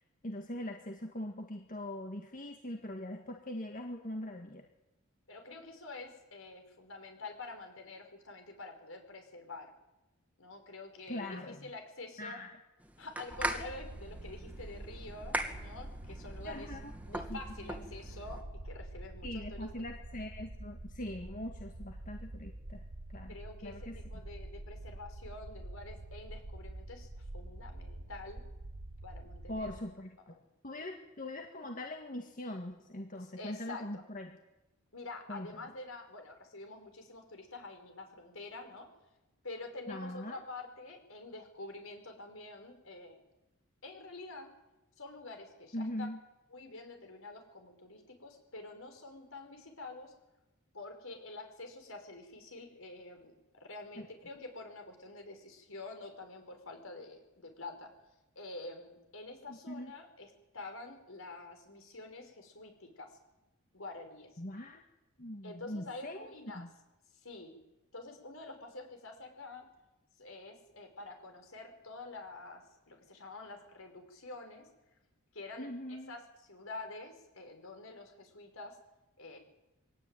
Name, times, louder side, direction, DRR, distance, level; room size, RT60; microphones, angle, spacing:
voice 1, 0.2-4.6 11.1-11.6 12.2-12.5 16.4-16.9 17.3-17.4 19.2-22.8 23.1-23.4 23.6-24.0 29.5-30.1 30.6-34.3 35.3-35.5 39.9-40.4 45.7-46.2 54.0-54.1 59.5-59.9 64.4-64.8 65.2-66.7 75.6-76.1, left 1 dB, 40° left, 3 dB, 1.9 m, -41 dB
voice 2, 5.3-9.7 10.4-12.4 13.0-16.8 17.1-19.7 23.3-28.4 29.0-29.8 30.3-30.4 33.4-34.0 34.9-38.9 39.4-43.2 43.8-44.5 45.0-46.1 46.5-50.1 50.7-57.9 58.4-63.2 63.7-64.4 65.4-66.7 67.2-67.6 67.9-69.7 70.2-74.6 75.3-76.2 76.5-78.8 79.2-79.4, left 2 dB, 70° left, 5 dB, 5.6 m, -47 dB
sound 1, 12.8-18.4, right 1 dB, 5° right, 2.0 m, -41 dB
sound 2, 13.3-29.8, right 1 dB, 85° right, 1.4 m, -46 dB
24.0 x 18.0 x 9.2 m, 0.98 s
head